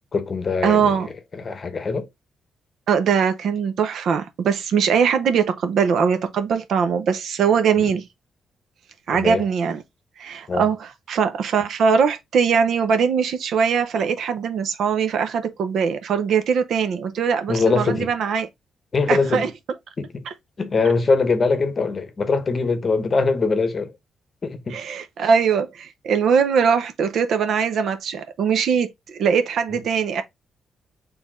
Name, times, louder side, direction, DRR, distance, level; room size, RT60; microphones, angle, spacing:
voice 1, 0.1-1.1 1.3-2.1 7.8-8.0 9.1-9.4 10.5-10.7 17.5-18.1 18.9-19.5 20.0-20.3 20.6-23.9 24.4-24.8 25.2-25.3 29.7-29.8, left 4 dB, 35° left, 0.8 m, -22 dB
voice 2, 0.6-1.1 2.9-8.1 9.1-9.8 10.2-18.5 19.1-19.5 24.7-30.2, right 6 dB, 70° right, 0.7 m, -21 dB
4.3 x 3.4 x 3.6 m
cardioid pair, 130°, 0 cm